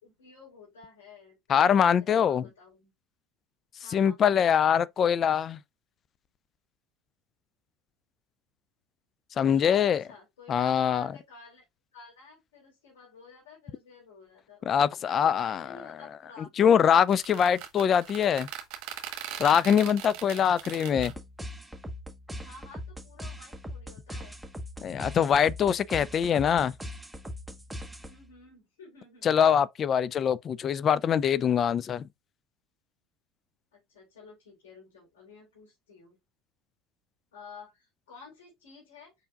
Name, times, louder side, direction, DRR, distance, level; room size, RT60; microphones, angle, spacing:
voice 1, 0.0-2.9 3.8-4.5 9.4-11.6 11.9-16.5 22.4-24.4 28.1-29.3 33.7-36.2 37.3-39.1, left 4 dB, 80° left, 3.4 m, -51 dB
voice 2, 1.5-2.5 3.9-5.6 9.4-10.0 10.5-11.1 14.7-15.6 16.6-18.5 19.4-21.1 24.8-26.7 29.2-32.1, left 8 dB, 40° left, 0.4 m, -23 dB
sound 1, 17.0-21.1, right 11 dB, 65° right, 1.1 m, -40 dB
sound 2, 20.9-28.4, equal, 5° right, 1.1 m, -41 dB
4.9 x 4.5 x 2.3 m
hypercardioid pair, 80°, 0 cm